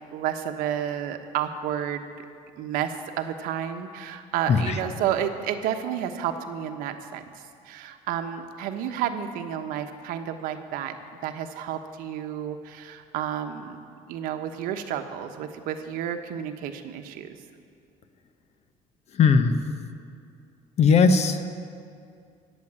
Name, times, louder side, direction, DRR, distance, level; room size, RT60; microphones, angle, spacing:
voice 1, 0.1-2.1 2.6-11.0 11.2-13.8 14.1-17.3, right 9 dB, 85° right, 7 dB, 1.1 m, -31 dB
voice 2, 19.1-19.6 20.8-21.5, left 5 dB, 50° left, 9 dB, 1.0 m, -19 dB
16.5 x 7.5 x 9.8 m, 2.4 s
cardioid pair, 120°, 14 cm